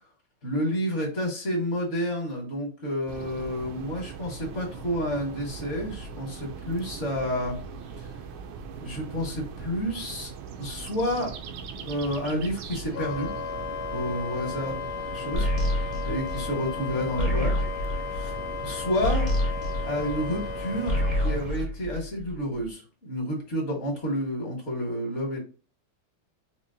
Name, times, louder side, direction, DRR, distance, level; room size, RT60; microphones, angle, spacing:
voice 1, 0.4-7.6 8.8-10.3 10.6-11.4 11.7-13.3 13.9-14.7 15.1-15.5 16.0-17.5 18.1-18.3 18.6-19.3 19.8-20.9 21.2-25.4, equal, 40° left, 0 dB, 1.4 m, -30 dB
sound 1, 3.1-21.7, right 5 dB, 75° right, 1.3 m, -40 dB
Wind instrument woodwind instrument, 12.9-21.4, left 7 dB, 80° left, 1.4 m, -35 dB
sound 2, 15.3-20.5 20.8-22.5, left 1 dB, 30° right, 0.7 m, -28 dB
4.4 x 2.9 x 2.6 m, 0.35 s
omnidirectional pair, 2.4 m